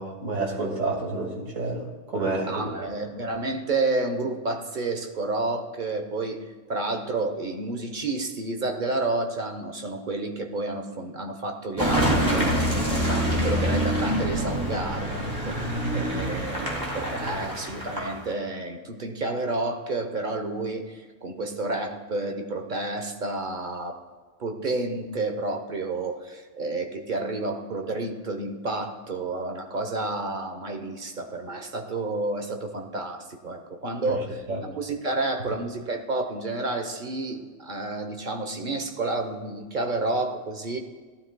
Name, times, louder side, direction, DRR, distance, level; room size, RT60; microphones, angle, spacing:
voice 1, 0.0-2.9 34.0-34.7, right 2 dB, 75° right, -1 dB, 2.7 m, -30 dB
voice 2, 2.5-24.0 24.4-40.8, right 2 dB, 40° right, 5 dB, 1.1 m, -30 dB
Car passing by / Engine, 11.8-18.3, equal, 15° right, 2.6 m, -26 dB
16.5 x 12.0 x 2.3 m, 1.4 s
omnidirectional pair, 1.3 m